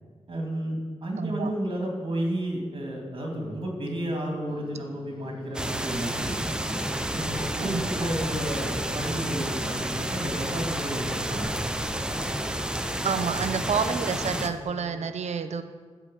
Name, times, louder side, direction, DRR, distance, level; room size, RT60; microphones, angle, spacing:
voice 1, 0.3-6.4 7.1-11.5, right 1 dB, 50° right, 0 dB, 2.7 m, -32 dB
voice 2, 1.2-1.5 7.6-7.8 13.0-15.6, right 6 dB, 90° right, 9 dB, 0.7 m, -29 dB
sound 1, 4.5-15.1, left 3 dB, 40° left, 0.9 m, -47 dB
sound 2, 5.5-14.5, right 1 dB, 5° right, 0.6 m, -30 dB
14.0 x 4.9 x 8.6 m, 1.5 s
wide cardioid pair, 160°, 11 cm